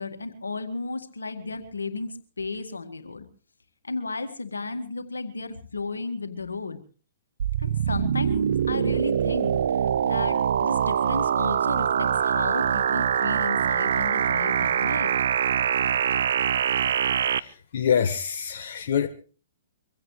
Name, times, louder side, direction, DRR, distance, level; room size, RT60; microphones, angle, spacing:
voice 1, 0.0-3.3 3.8-6.8 7.6-15.1, left 3 dB, 90° left, 1.9 m, -34 dB
sound 1, 7.4-17.4, right 8 dB, 65° right, 0.6 m, -24 dB
voice 2, 17.4-19.1, left 8 dB, 60° left, 1.2 m, -26 dB
24.0 x 16.0 x 3.3 m
hypercardioid pair, 125°, 0 cm